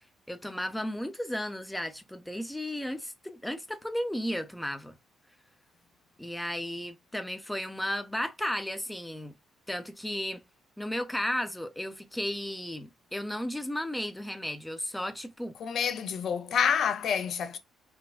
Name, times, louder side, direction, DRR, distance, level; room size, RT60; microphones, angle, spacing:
voice 1, 0.3-5.0 6.2-9.3 9.7-10.4 10.8-15.5, left 1 dB, 5° left, 0.5 m, -34 dB
voice 2, 15.6-17.6, left 7 dB, 65° left, 0.5 m, -28 dB
3.4 x 2.2 x 2.3 m
cardioid pair, 90°, 0 cm